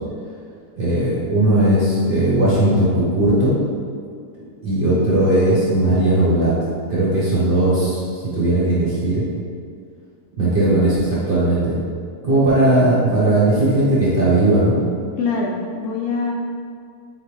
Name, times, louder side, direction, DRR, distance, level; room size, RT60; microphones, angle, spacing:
voice 1, 0.8-3.5 4.4-6.6 6.9-9.2 10.4-11.8 12.2-14.7, right 1 dB, 40° right, -9 dB, 0.9 m, -17 dB
voice 2, 10.5-11.1 15.2-16.3, left 4 dB, 75° left, -1 dB, 1.0 m, -25 dB
4.0 x 3.6 x 3.1 m, 2.2 s
omnidirectional pair, 1.8 m